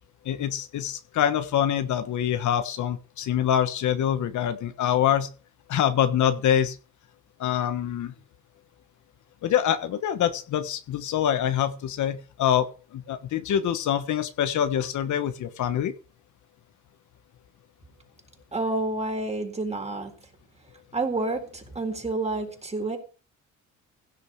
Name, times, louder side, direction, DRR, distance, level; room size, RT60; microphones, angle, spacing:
voice 1, 0.2-5.3 5.7-6.8 7.4-8.1 9.4-15.9, left 10 dB, 75° left, 11 dB, 1.3 m, -25 dB
voice 2, 18.5-20.2 20.9-23.0, right 2 dB, 20° right, 5 dB, 3.9 m, -29 dB
16.0 x 6.8 x 6.4 m, 0.36 s
cardioid pair, 90°, 30 cm